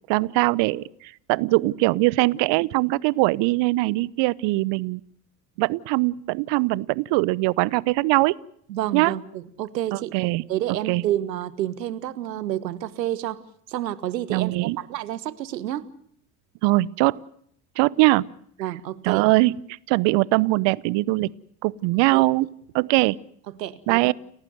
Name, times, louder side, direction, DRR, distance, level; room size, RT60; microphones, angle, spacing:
voice 1, 0.1-5.0 5.6-8.4 8.9-9.1 9.9-10.4 10.9-11.0 14.3-14.8 16.6-17.2 17.8-18.2 19.0-19.5 19.9-21.3 21.6-22.5 22.7-23.2 23.9-24.1, right 21 dB, 60° right, 23 dB, 0.9 m, -21 dB
voice 2, 8.7-10.1 10.5-13.4 13.7-15.9 18.6-19.2 22.1-22.2 23.5-24.0, right 12 dB, 85° right, 16 dB, 1.5 m, -29 dB
30.0 x 15.0 x 8.0 m, 0.68 s
hypercardioid pair, 65°, 49 cm